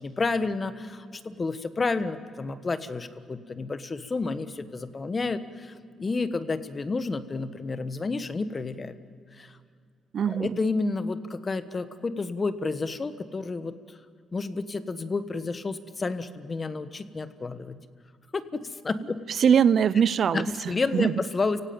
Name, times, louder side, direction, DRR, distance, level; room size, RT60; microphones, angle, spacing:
voice 1, 0.0-8.9 9.4-9.5 10.2-13.8 14.3-17.8 18.3-19.2 20.3-21.6, left 3 dB, 30° left, 11 dB, 1.3 m, -30 dB
voice 2, 10.1-10.6 19.3-21.1, right 7 dB, 55° right, 18 dB, 0.6 m, -22 dB
29.5 x 16.5 x 8.9 m, 2.1 s
cardioid pair, 90°, 0 cm